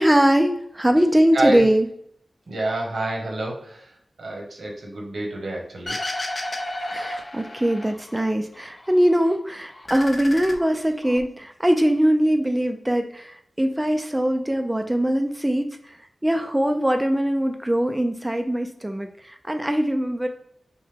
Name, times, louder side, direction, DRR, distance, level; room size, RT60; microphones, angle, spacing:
voice 1, 0.0-1.9 6.9-16.0 16.2-20.3, equal, 15° right, 5 dB, 0.4 m, -22 dB
voice 2, 1.3-1.7 2.5-6.0, right 1 dB, 85° right, 0 dB, 1.2 m, -28 dB
sound 1, 5.9-8.2 8.5-9.4 9.7-11.2, left 1 dB, 45° left, 0.7 m, -32 dB
5.5 x 2.2 x 3.4 m, 0.67 s
wide cardioid pair, 80°, 0 cm